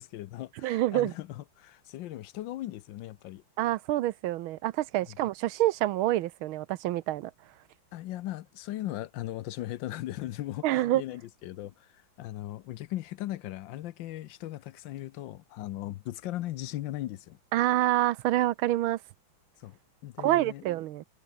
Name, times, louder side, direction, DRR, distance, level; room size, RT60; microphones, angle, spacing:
voice 1, 0.0-3.4 5.1-5.2 7.9-17.4 19.6-20.6, left 14 dB, 75° left, 1.3 m, -38 dB
voice 2, 0.6-1.1 3.6-7.3 10.6-11.0 17.5-19.0 20.2-21.0, right 15 dB, 80° right, 1.5 m, -27 dB
omnidirectional pair, 2.3 m